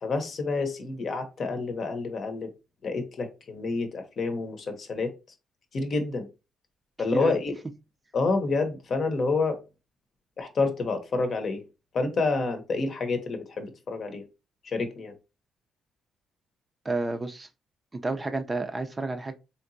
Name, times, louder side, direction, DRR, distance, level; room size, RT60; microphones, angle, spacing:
voice 1, 0.0-2.5 2.8-5.1 5.7-6.3 7.0-7.5 8.1-9.6 10.4-11.6 11.9-14.2 14.6-15.1, left 3 dB, 50° left, 0.8 m, -28 dB
voice 2, 16.8-17.5 18.0-19.3, right 3 dB, 25° right, 0.5 m, -30 dB
3.4 x 2.8 x 2.6 m
cardioid pair, 90°, 0 cm